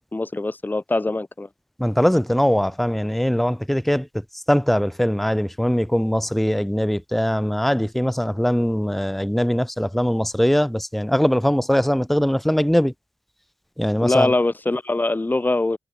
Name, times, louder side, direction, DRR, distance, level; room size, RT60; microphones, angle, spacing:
voice 1, 0.1-1.5 14.0-15.8, left 2 dB, 20° left, 1.8 m, -22 dB
voice 2, 1.8-4.1 4.5-12.9 13.8-14.3, equal, ahead, 0.9 m, -21 dB
cardioid pair, 55°, 8 cm